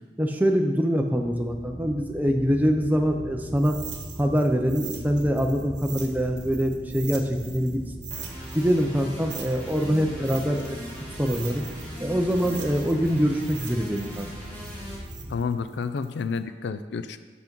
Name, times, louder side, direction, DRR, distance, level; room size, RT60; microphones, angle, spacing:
voice 1, 0.2-3.8 4.2-7.8 8.5-10.8 11.2-11.7 12.0-14.3, equal, 10° right, 3 dB, 0.5 m, -24 dB
sound 1, 1.1-15.4, equal, 40° right, 1.1 m, -41 dB
sound 2, 3.6-7.8 8.0-11.9 12.3-16.4, right 9 dB, 75° right, 1.0 m, -42 dB
sound 3, 8.1-15.0, equal, 10° left, 1.6 m, -40 dB
voice 2, 15.3-17.2, left 5 dB, 80° left, 11 dB, 0.4 m, -30 dB
6.0 x 5.9 x 5.3 m, 1.5 s
head